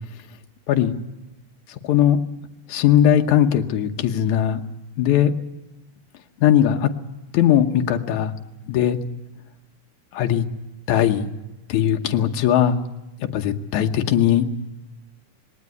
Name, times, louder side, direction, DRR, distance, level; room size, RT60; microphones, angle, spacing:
voice 1, 1.8-2.2 2.7-4.6 5.0-5.3 6.4-6.9 7.3-8.3 8.7-9.0 10.1-10.5 10.9-11.3 11.7-12.8 13.2-14.5, left 10 dB, 70° left, 5 dB, 2.4 m, -19 dB
20.5 x 17.5 x 9.6 m, 1.0 s
omnidirectional pair, 3.7 m